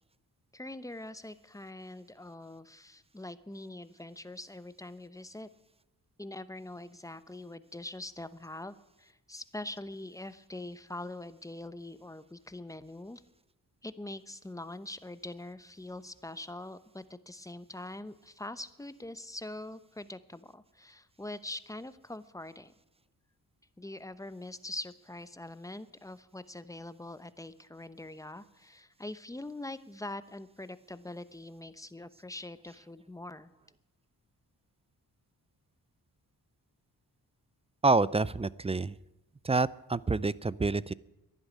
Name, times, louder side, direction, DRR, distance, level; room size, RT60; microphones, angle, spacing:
voice 1, 0.5-5.5 6.2-13.2 13.8-22.7 23.8-33.5, left 2 dB, 10° left, 13 dB, 0.9 m, -43 dB
voice 2, 37.8-39.0 39.4-40.9, right 3 dB, 15° right, 20 dB, 0.4 m, -27 dB
12.0 x 11.0 x 9.2 m, 1.0 s
cardioid pair, 65°, 37 cm